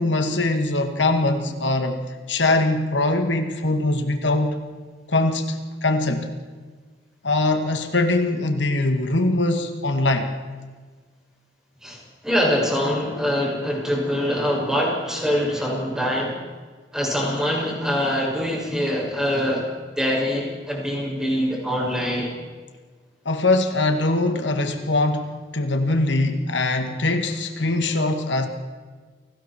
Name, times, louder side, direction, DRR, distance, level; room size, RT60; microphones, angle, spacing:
voice 1, 0.0-4.6 5.1-5.6 5.8-6.3 7.2-10.3 23.3-28.5, left 2 dB, 90° left, 5 dB, 2.2 m, -22 dB
voice 2, 11.8-16.4 16.9-19.7 20.0-22.3, equal, 5° right, -3 dB, 6.9 m, -24 dB
29.0 x 19.5 x 4.6 m, 1.4 s
head